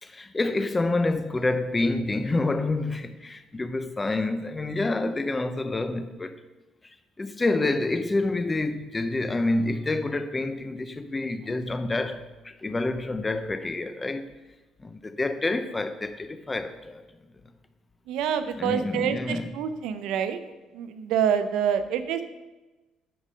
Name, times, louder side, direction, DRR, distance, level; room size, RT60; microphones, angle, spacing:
voice 1, 0.0-6.4 7.2-14.3 14.8-17.0 18.6-19.5, left 2 dB, 15° left, 0.5 m, -28 dB
voice 2, 18.1-20.4 20.7-22.2, right 8 dB, 80° right, 0.6 m, -27 dB
8.6 x 5.0 x 5.5 m
cardioid pair, 130°, 0 cm